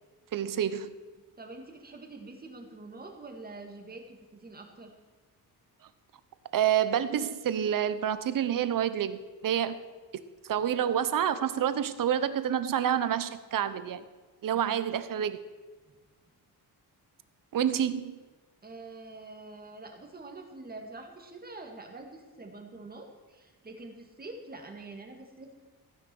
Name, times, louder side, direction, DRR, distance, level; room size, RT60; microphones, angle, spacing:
voice 1, 0.3-0.9 6.5-9.8 10.4-14.0 14.4-15.4 17.5-18.2, right 9 dB, 55° right, 13 dB, 0.9 m, -28 dB
voice 2, 1.4-4.9 14.5-14.8 18.6-25.6, right 2 dB, 25° right, 3 dB, 2.0 m, -46 dB
15.5 x 10.0 x 6.2 m, 1.3 s
wide cardioid pair, 160°, 38 cm